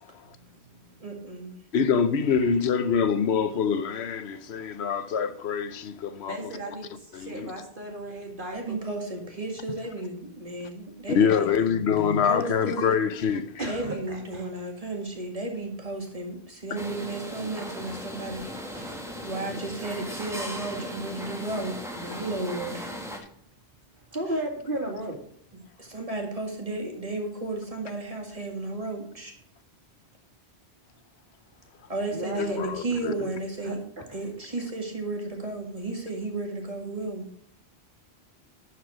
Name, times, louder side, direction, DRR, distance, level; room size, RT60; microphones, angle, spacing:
voice 1, 0.2-1.6 6.6-6.7 8.5-13.0 13.7-18.9 19.2-22.9 24.3-24.4 25.8-29.3 31.9-33.8 34.1-37.3, right 2 dB, 35° right, 1.9 m, -34 dB
voice 2, 1.7-6.5 7.1-7.5 11.1-13.5 32.4-33.1, left 6 dB, 75° left, 1.0 m, -25 dB
voice 3, 6.3-8.8 13.6-14.5 18.4-19.3 24.1-25.2 32.1-32.6 33.6-33.8, right 1 dB, 50° right, 2.1 m, -35 dB
sound 1, 16.8-23.2, equal, 5° right, 1.3 m, -37 dB
11.0 x 4.7 x 5.9 m
omnidirectional pair, 1.1 m